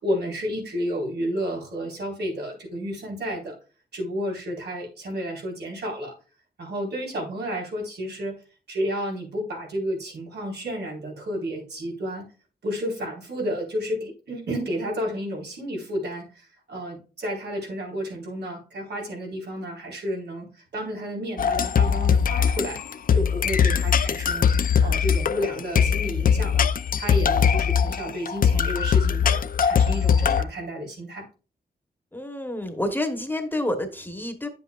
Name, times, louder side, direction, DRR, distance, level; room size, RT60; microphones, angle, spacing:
voice 1, 0.0-3.5 3.9-6.1 6.6-8.3 8.7-12.2 12.6-22.8 23.1-24.5 24.8-26.7 27.0-31.2, equal, 90° right, -1 dB, 4.3 m, -31 dB
sound 1, 21.4-30.4, left 7 dB, 55° left, 0.5 m, -21 dB
voice 2, 32.1-34.5, left 1 dB, 10° left, 6 dB, 1.1 m, -29 dB
10.0 x 7.7 x 2.4 m, 0.35 s
wide cardioid pair, 180°, 17 cm